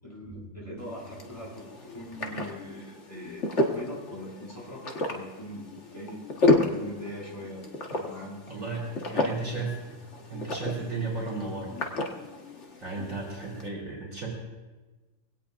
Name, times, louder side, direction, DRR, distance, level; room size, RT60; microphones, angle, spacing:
voice 1, 0.0-3.4 3.7-4.8 5.1-9.0 9.4-9.6, equal, 15° left, -4 dB, 6.1 m, -41 dB
sound 1, 0.8-13.7, left 2 dB, 40° left, 1.6 m, -32 dB
voice 2, 8.5-9.8 10.3-11.7 12.8-14.3, right 3 dB, 40° right, -3 dB, 3.6 m, -34 dB
22.5 x 17.5 x 2.6 m, 1.2 s
omnidirectional pair, 2.0 m